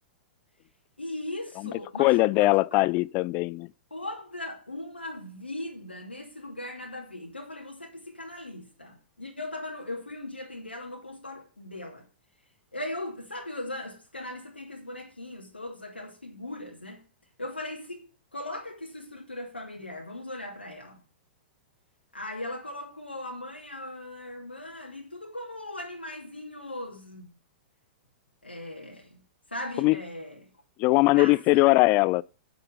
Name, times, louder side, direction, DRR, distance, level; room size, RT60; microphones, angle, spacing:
voice 1, 1.0-2.8 3.9-12.0 12.7-17.0 17.4-18.0 18.3-21.0 22.1-27.3 28.4-29.2 29.5-30.4 31.1-31.6, left 1 dB, 80° left, 2.6 m, -39 dB
voice 2, 2.0-3.7 29.8-30.0 30.8-32.2, left 22 dB, 35° left, 0.4 m, -21 dB
9.7 x 6.9 x 5.3 m
figure-of-eight pair, 100°, 6 cm